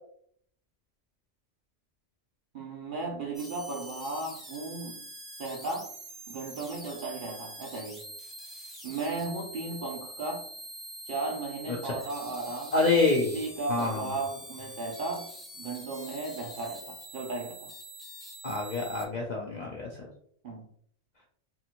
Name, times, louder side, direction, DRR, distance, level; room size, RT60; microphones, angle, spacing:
voice 1, 2.5-5.0 5.4-5.9 6.3-8.1 8.8-10.4 11.1-12.8 13.0-17.7 20.4-20.7, right 3 dB, 60° right, 0 dB, 0.5 m, -35 dB
sound 1, 3.3-19.1, right 1 dB, ahead, 0.4 m, -45 dB
voice 2, 12.7-13.3 13.7-14.0 18.4-20.1, left 3 dB, 60° left, -2 dB, 0.4 m, -27 dB
2.6 x 2.5 x 2.8 m, 0.63 s
omnidirectional pair, 1.2 m